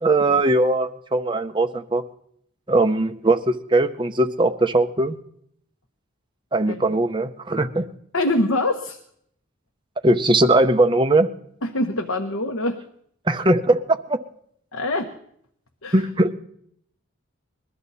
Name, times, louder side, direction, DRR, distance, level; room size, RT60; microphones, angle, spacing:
voice 1, 0.0-2.0 2.7-5.2 6.5-7.8 10.0-11.3 13.3-14.2 15.9-16.3, right 2 dB, 20° right, 6 dB, 0.7 m, -20 dB
voice 2, 8.1-9.0 11.6-12.8 14.7-15.1 15.8-16.0, left 1 dB, 75° left, 5 dB, 1.0 m, -24 dB
21.0 x 13.5 x 4.1 m, 0.70 s
head